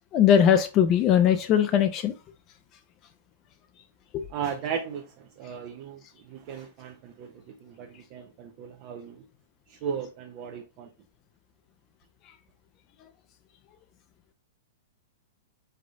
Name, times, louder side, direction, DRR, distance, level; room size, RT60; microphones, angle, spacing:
voice 1, 0.1-2.1 4.1-4.2, left 9 dB, 35° left, 0.4 m, -20 dB
voice 2, 4.3-9.2 9.7-10.9, right 7 dB, 45° right, 0.6 m, -36 dB
3.7 x 3.4 x 3.6 m
hypercardioid pair, 115°, 0 cm